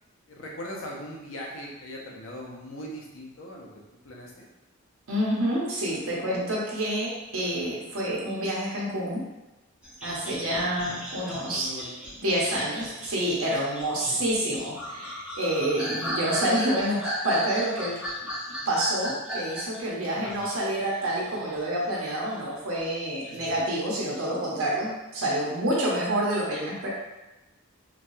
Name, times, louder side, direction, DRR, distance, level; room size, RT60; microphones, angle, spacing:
voice 1, 0.3-3.7 4.0-4.4 10.4-11.0 11.5-12.2 14.1-14.2 20.1-20.4 23.3-23.5, equal, 65° left, -2 dB, 0.6 m, -40 dB
voice 2, 5.1-9.2 10.0-11.7 12.2-18.0 18.7-26.9, right 1 dB, 80° right, -5 dB, 0.7 m, -28 dB
sound 1, 9.8-21.7 22.0-23.4, equal, 5° right, 0.8 m, -36 dB
3.0 x 2.2 x 2.6 m, 1.0 s
head